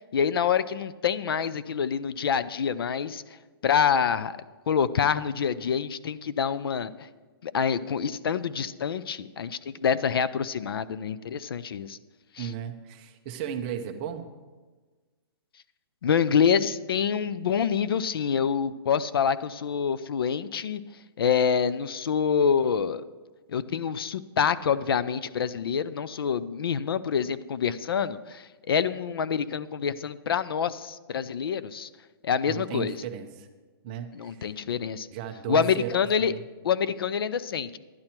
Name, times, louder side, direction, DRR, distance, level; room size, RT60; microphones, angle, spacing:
voice 1, 0.1-3.4 3.6-4.4 4.7-7.1 7.4-12.0 12.3-12.5 16.0-20.8 21.2-23.0 23.5-31.9 32.2-33.0 34.1-35.1 35.5-36.3 36.6-37.8, left 7 dB, 65° left, 15 dB, 0.5 m, -26 dB
voice 2, 12.4-14.3 32.5-33.5 33.8-34.5 35.1-35.9 36.2-36.4, right 9 dB, 20° right, 6 dB, 0.6 m, -35 dB
11.0 x 10.5 x 4.4 m, 1.3 s
hypercardioid pair, 175°, 13 cm